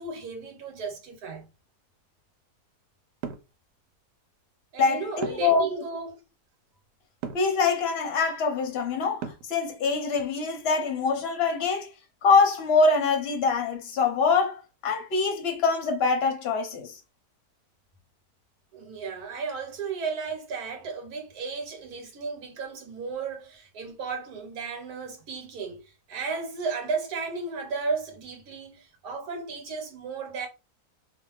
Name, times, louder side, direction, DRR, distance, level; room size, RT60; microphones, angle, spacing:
voice 1, 0.0-1.5 4.7-6.2 18.7-30.5, right 4 dB, 70° right, 1.4 m, -34 dB
sound 1, 3.2-3.5 5.2-5.6 7.2-7.5 9.2-9.6, right 7 dB, 90° right, 1.2 m, -35 dB
voice 2, 4.8-5.7 7.3-11.9 12.2-17.0, left 4 dB, 50° left, 0.8 m, -24 dB
2.6 x 2.5 x 3.1 m
omnidirectional pair, 1.7 m